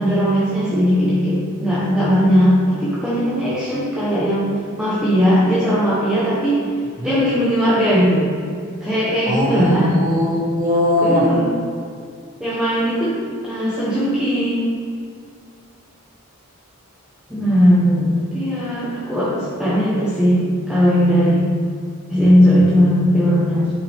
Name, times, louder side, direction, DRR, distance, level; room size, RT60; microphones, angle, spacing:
voice 1, 0.0-4.5 4.8-6.7 7.0-8.3 8.8-9.9 11.0-11.5 12.4-14.7 17.3-21.5 22.1-23.7, equal, 5° right, -10 dB, 1.3 m, -18 dB
voice 2, 9.2-11.3, left 1 dB, 40° right, -3 dB, 1.7 m, -19 dB
9.7 x 5.7 x 3.7 m, 2.3 s
head